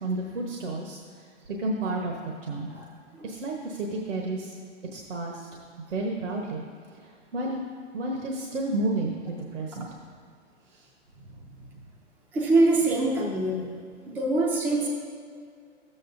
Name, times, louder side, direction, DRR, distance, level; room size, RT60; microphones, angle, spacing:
voice 1, 0.0-1.0 1.6-2.1 2.4-2.7 3.2-4.5 4.9-5.5 5.9-6.6 7.3-7.6 7.9-9.9 10.7-10.8, right 2 dB, 80° right, 0 dB, 1.2 m, -31 dB
voice 2, 12.3-13.7 14.1-14.9, right 2 dB, 5° right, -1 dB, 0.4 m, -24 dB
13.0 x 7.7 x 2.6 m, 2.2 s
hypercardioid pair, 140°, 37 cm